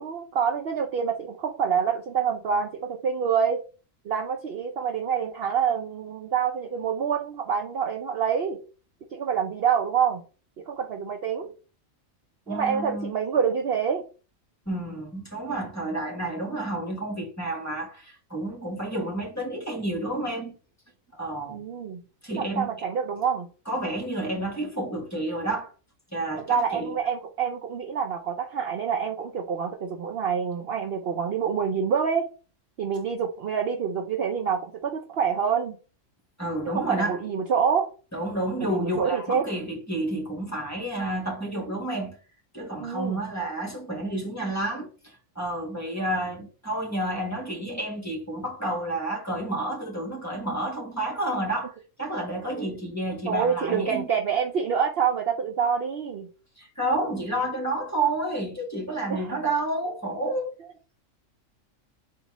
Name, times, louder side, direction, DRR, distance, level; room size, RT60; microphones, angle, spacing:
voice 1, 0.0-3.6 4.0-8.6 9.1-10.2 10.7-11.5 12.5-14.0 21.5-22.0 22.4-23.5 26.5-32.3 32.8-35.8 36.6-37.9 38.6-39.5 42.8-43.2 52.5-52.7 53.3-56.3 59.1-59.4, right 7 dB, 60° right, 0.7 m, -26 dB
voice 2, 12.5-13.1 14.6-20.5 21.1-21.6 22.2-22.7 23.7-25.7 26.1-27.0 36.4-37.2 38.1-42.2 42.5-51.7 52.0-54.1 56.6-60.5, right 1 dB, 15° left, 1.4 m, -30 dB
4.1 x 2.7 x 4.8 m
omnidirectional pair, 1.4 m